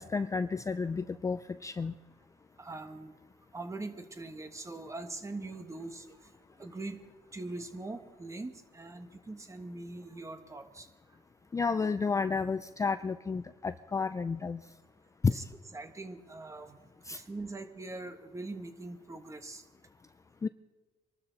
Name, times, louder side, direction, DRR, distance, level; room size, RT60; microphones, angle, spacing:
voice 1, 0.0-1.9 11.5-14.6 15.2-15.3 17.1-17.2 20.4-20.5, left 4 dB, 20° left, 12 dB, 0.4 m, -31 dB
voice 2, 2.6-3.1 3.5-6.3 6.6-7.0 7.3-10.9 15.3-15.4 15.7-16.8 17.1-19.6, right 2 dB, 20° right, 8 dB, 1.4 m, -42 dB
24.5 x 12.5 x 4.0 m, 1.3 s
cardioid pair, 110°, 17 cm